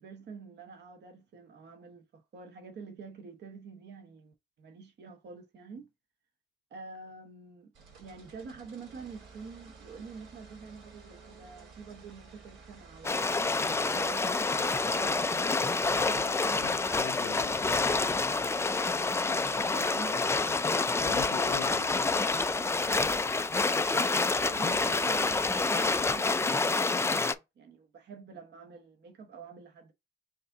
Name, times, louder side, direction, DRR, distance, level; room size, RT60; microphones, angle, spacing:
voice 1, 0.0-5.9 6.7-7.7 8.0-15.2 15.7-16.7 19.3-20.7 21.4-21.8 22.6-23.2 24.0-29.9, right 5 dB, 60° right, 1.0 m, -47 dB
sound 1, 7.7-25.3, right 4 dB, 75° right, 2.2 m, -54 dB
sound 2, 13.0-27.3, left 3 dB, 15° left, 0.3 m, -28 dB
voice 2, 16.1-18.2 21.0-22.7, left 10 dB, 90° left, 0.9 m, -44 dB
4.7 x 2.7 x 3.8 m
cardioid pair, 90°, 20 cm